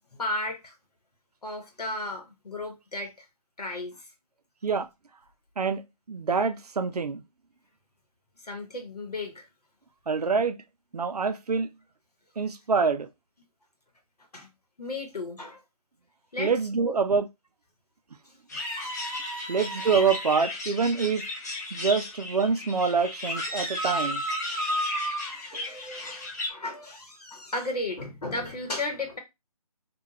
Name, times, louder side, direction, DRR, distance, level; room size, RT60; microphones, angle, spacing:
voice 1, 0.2-0.7 1.4-3.3 3.6-4.1 8.4-9.5 14.3-14.5 14.8-15.6 16.3-16.5 16.8-17.0 18.5-18.6 24.5-29.2, left 2 dB, 80° left, 0.9 m, -35 dB
voice 2, 6.1-7.2 10.1-10.6 10.9-11.7 12.4-13.1 16.4-17.3 19.5-21.2 21.7-24.2 25.5-25.6, right 5 dB, 80° right, 0.5 m, -26 dB
sound 1, 18.5-26.5, left 3 dB, 25° left, 0.5 m, -36 dB
sound 2, 18.5-20.3 23.2-25.3, right 1 dB, ahead, 0.8 m, -32 dB
2.3 x 2.2 x 2.9 m
figure-of-eight pair, 150°, 20 cm